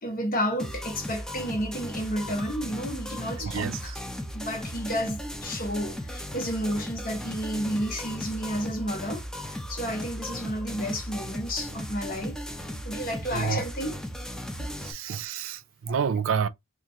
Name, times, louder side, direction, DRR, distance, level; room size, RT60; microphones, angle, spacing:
voice 1, 0.0-3.9 4.3-12.4 12.7-14.0 14.6-14.7 15.1-15.2, equal, 45° left, 1.1 m, -31 dB
sound 1, 0.6-14.9, equal, 5° left, 0.5 m, -36 dB
voice 2, 3.4-4.0 13.3-13.6 14.8-16.5, right 6 dB, 70° right, 0.4 m, -29 dB
2.9 x 2.4 x 3.6 m
head